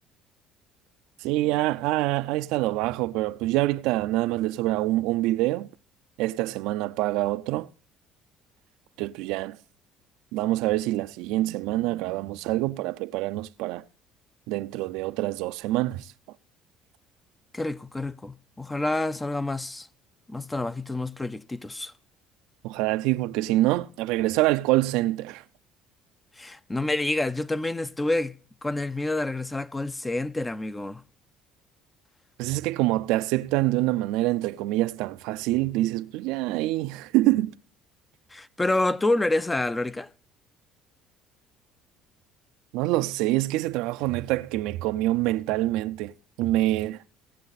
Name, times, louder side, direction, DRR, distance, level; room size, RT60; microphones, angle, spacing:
voice 1, 1.2-5.7 6.2-7.7 9.0-9.6 10.3-13.8 14.5-16.1 22.6-25.4 32.4-37.5 42.7-46.1 46.4-47.0, right 17 dB, 85° right, 0.4 m, -25 dB
voice 2, 17.5-19.9 20.3-21.9 26.4-28.3 28.6-31.0 38.3-40.1, left 2 dB, 15° left, 0.5 m, -28 dB
18.0 x 7.4 x 4.0 m
cardioid pair, 100°, 0 cm